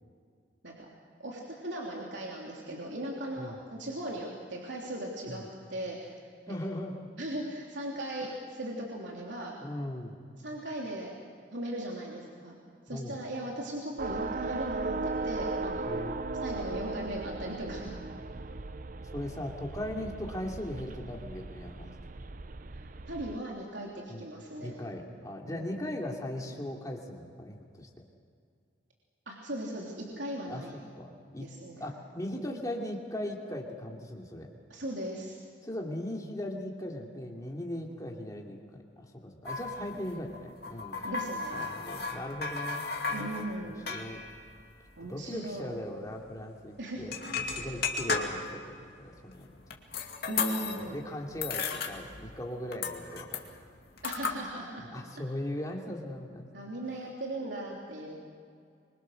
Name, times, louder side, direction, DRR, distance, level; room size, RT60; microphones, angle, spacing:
voice 1, 1.2-5.4 5.7-6.2 6.5-6.6 7.2-9.6 10.4-11.2 11.5-12.6 12.9-15.9 16.4-18.0 22.7-24.8 25.5-25.6 29.3-30.7 31.4-31.9 34.7-35.4 41.0-41.7 43.1-43.8 45.0-45.7 46.8-47.0 47.4-47.7 50.3-51.1 54.0-54.9 56.5-58.4, right 1 dB, 70° right, -2 dB, 3.3 m, -38 dB
voice 2, 6.5-7.1 8.2-8.3 9.6-10.2 12.9-13.2 15.9-16.4 18.3-18.7 19.1-21.9 24.1-24.2 24.6-27.9 30.5-31.5 31.8-34.5 35.6-41.0 41.5-43.3 43.9-44.2 45.1-47.2 47.5-49.5 50.7-53.5 54.9-56.5, left 1 dB, 20° left, 0 dB, 2.7 m, -39 dB
sound 1, 14.0-23.4, right 3 dB, 45° right, 0.7 m, -37 dB
sound 2, 39.5-45.5 45.7-45.8 46.1-46.3 47.0-48.7 49.2-51.0 51.3-52.4 52.7-54.4, left 4 dB, 55° left, 2.4 m, -35 dB
25.5 x 23.5 x 6.5 m, 2.3 s
head